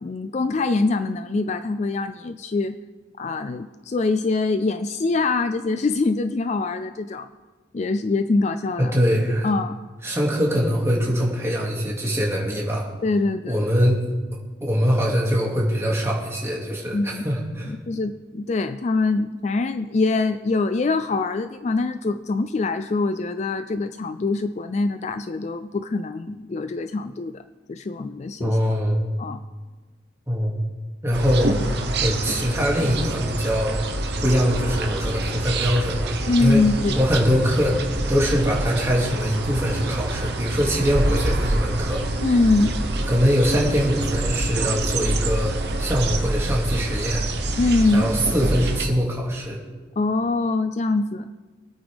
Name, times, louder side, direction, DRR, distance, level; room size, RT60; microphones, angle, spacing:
voice 1, 0.0-2.8 3.2-7.3 7.7-9.0 9.4-9.7 13.0-13.6 16.9-17.2 17.7-27.4 27.7-28.8 29.2-29.4 36.3-37.0 42.2-42.7 47.6-48.1 50.0-51.3, left 3 dB, 35° left, 10 dB, 0.3 m, -24 dB
voice 2, 8.8-9.5 10.0-12.9 13.5-13.9 14.6-17.7 28.4-29.0 30.3-30.5 31.0-31.6 32.0-33.8 34.2-36.6 37.0-42.0 43.0-45.5 45.8-47.2 47.9-49.6, equal, 15° right, -3 dB, 2.3 m, -22 dB
sound 1, 31.1-48.9, right 2 dB, 55° right, 1.0 m, -26 dB
23.5 x 8.8 x 3.5 m, 1.3 s
head